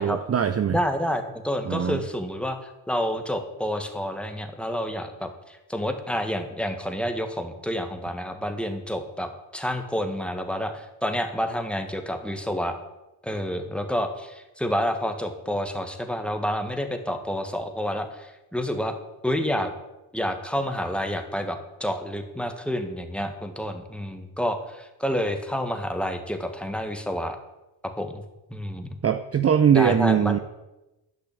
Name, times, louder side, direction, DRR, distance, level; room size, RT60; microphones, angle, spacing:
voice 1, 0.0-0.8 1.6-2.0 29.0-30.4, right 8 dB, 30° right, 9 dB, 0.7 m, -21 dB
voice 2, 0.7-2.6 2.9-12.8 13.2-18.9 19.2-19.7 20.1-27.4 28.0-28.2 28.5-29.0 29.7-30.4, equal, ahead, 5 dB, 1.8 m, -29 dB
12.0 x 5.9 x 8.7 m, 0.99 s
supercardioid pair, 80°, 49 cm